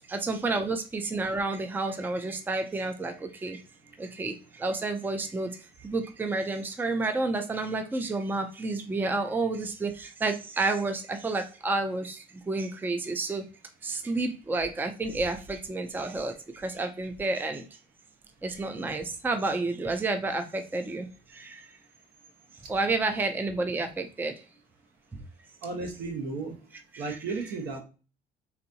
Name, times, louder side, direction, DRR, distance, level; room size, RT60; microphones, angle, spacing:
voice 1, 0.1-3.6 4.0-13.4 13.8-17.7 18.4-21.7 22.7-24.4 26.9-27.2, right 3 dB, 10° right, 0.4 m, -30 dB
voice 2, 25.6-26.6 27.0-27.8, right 4 dB, 70° right, 1.1 m, -34 dB
4.1 x 2.7 x 2.7 m
cardioid pair, 110°, 17 cm